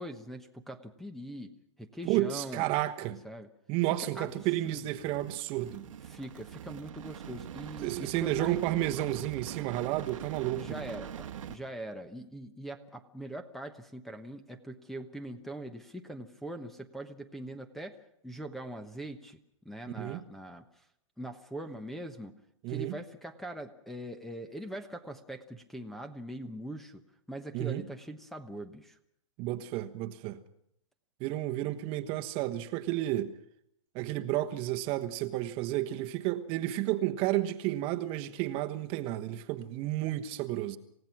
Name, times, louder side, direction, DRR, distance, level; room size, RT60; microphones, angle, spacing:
voice 1, 0.0-1.5 1.8-2.7 3.2-3.5 4.0-4.3 4.7-4.9 6.0-8.6 10.5-18.0 18.2-19.4 19.6-20.8 21.2-22.3 22.7-27.0 27.3-29.0, right 1 dB, ahead, 1.1 m, -42 dB
voice 2, 2.0-3.2 3.7-5.9 7.8-10.7 20.0-20.2 22.6-23.0 27.5-27.8 29.4-30.4 31.2-33.4 33.9-40.8, right 15 dB, 30° right, 1.3 m, -31 dB
sound 1, 4.0-11.6, right 9 dB, 75° right, 1.4 m, -43 dB
28.0 x 16.5 x 6.1 m
hypercardioid pair, 140°, 17 cm